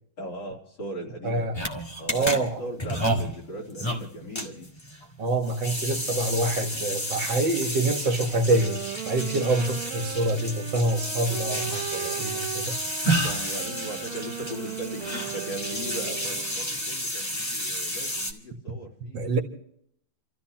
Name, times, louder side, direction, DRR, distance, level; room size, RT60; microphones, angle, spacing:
voice 1, 0.2-1.6 2.0-4.7 5.8-6.0 13.1-19.2, equal, 60° left, 4.1 m, -38 dB
voice 2, 1.2-1.6 2.1-2.6 5.2-12.7 19.1-19.4, right 2 dB, 60° right, 2.4 m, -26 dB
sound 1, 1.5-18.3, equal, 15° left, 1.3 m, -31 dB
sound 2, 8.4-16.6, right 12 dB, 85° right, 1.6 m, -37 dB
30.0 x 14.0 x 3.0 m
omnidirectional pair, 2.2 m